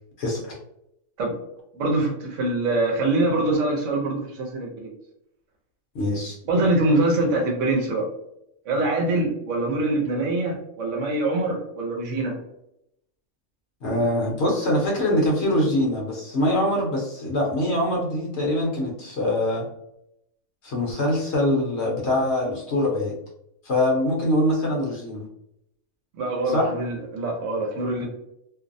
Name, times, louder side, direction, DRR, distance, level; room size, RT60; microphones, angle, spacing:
voice 1, 0.2-0.6 5.9-6.4 13.8-19.7 20.6-23.2 23.6-25.2 26.5-26.7, left 1 dB, 60° left, -2 dB, 0.9 m, -23 dB
voice 2, 1.7-4.9 6.5-8.0 8.7-12.3 26.1-28.1, right 2 dB, 65° right, 0 dB, 0.9 m, -24 dB
2.6 x 2.0 x 2.5 m, 0.79 s
omnidirectional pair, 1.5 m